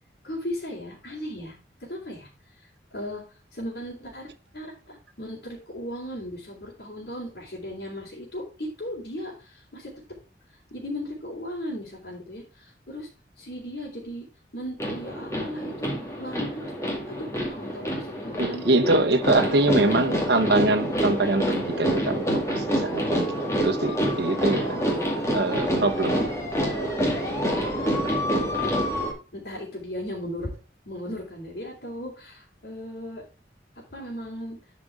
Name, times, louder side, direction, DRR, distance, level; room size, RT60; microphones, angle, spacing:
voice 1, 0.2-1.5 1.8-2.3 2.9-3.2 3.5-9.9 10.7-13.1 13.4-14.3 14.5-15.9 16.2-18.9 19.2-20.2 24.8-25.3 27.7-28.1 29.3-30.5 30.9-33.2 33.7-34.6, equal, 65° left, 3.2 m, -36 dB
sound 1, 14.8-29.1, equal, 15° left, 2.2 m, -27 dB
voice 2, 18.4-23.3 23.6-24.8 25.3-26.2, right 2 dB, 70° right, 1.1 m, -24 dB
11.0 x 5.2 x 3.5 m
head